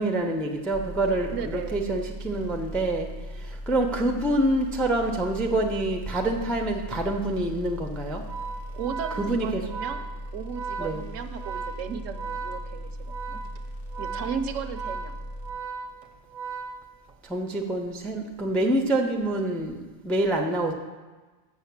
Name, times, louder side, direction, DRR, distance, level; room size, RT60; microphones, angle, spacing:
voice 1, 0.0-8.2 9.2-9.6 10.8-11.0 17.2-20.7, right 1 dB, ahead, 2 dB, 0.3 m, -26 dB
sound 1, 0.7-15.5, equal, 55° left, 1.3 m, -38 dB
voice 2, 1.3-1.9 8.7-10.0 10.3-13.4 14.0-15.2, right 7 dB, 70° right, 8 dB, 0.9 m, -35 dB
Organ, 8.2-17.3, right 5 dB, 50° right, 0.6 m, -37 dB
6.6 x 6.4 x 7.1 m, 1.3 s
omnidirectional pair, 1.4 m